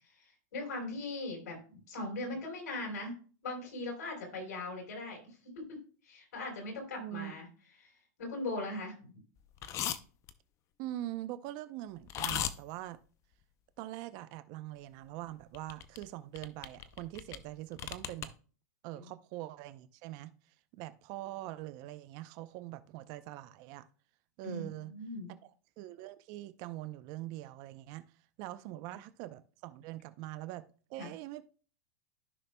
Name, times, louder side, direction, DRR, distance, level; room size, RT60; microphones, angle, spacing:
voice 1, 0.2-1.6 1.9-3.2 3.4-5.2 5.6-7.5 7.8-7.9 8.2-9.1 18.9-19.0 24.4-25.3 31.0-31.1, left 2 dB, 85° left, 3.9 m, -40 dB
voice 2, 7.0-7.3 10.8-13.0 13.8-18.3 18.8-23.9 24.4-24.9 25.4-28.0 28.4-31.4, right 15 dB, 45° right, 0.6 m, -43 dB
sound 1, 9.6-10.0 10.3-10.4 12.1-12.5 15.5-16.0 16.4-17.4 17.7-18.3, left 11 dB, 35° left, 0.6 m, -36 dB
14.0 x 5.7 x 2.2 m
supercardioid pair, 140°, 9 cm